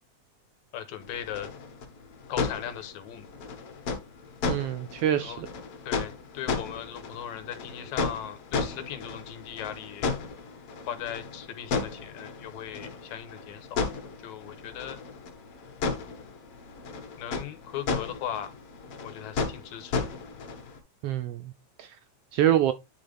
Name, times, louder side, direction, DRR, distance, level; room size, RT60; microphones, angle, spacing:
voice 1, 0.7-1.5 2.3-3.3 5.2-5.4 5.9-10.0 10.9-13.7 14.2-15.0 17.2-18.5 19.0-20.1, left 10 dB, 80° left, 2.4 m, -38 dB
sound 1, 1.0-20.8, left 4 dB, 55° left, 2.1 m, -35 dB
voice 2, 4.5-5.5 21.0-21.5 21.8-22.0 22.3-22.7, right 11 dB, 90° right, 1.3 m, -25 dB
10.5 x 3.8 x 3.4 m
omnidirectional pair, 3.3 m